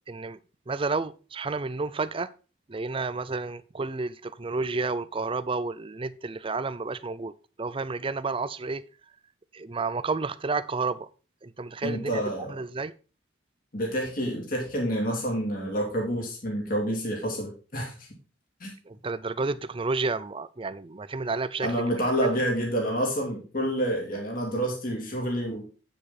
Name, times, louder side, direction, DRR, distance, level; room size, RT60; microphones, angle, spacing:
voice 1, 0.1-0.4 0.7-2.3 2.7-8.8 9.5-11.1 11.4-12.2 12.5-12.9 18.9-21.7, right 3 dB, 25° right, 0.5 m, -31 dB
voice 2, 11.8-12.5 13.7-18.1 18.6-18.7 21.6-25.6, equal, 45° left, 2.8 m, -28 dB
8.9 x 7.5 x 4.2 m
head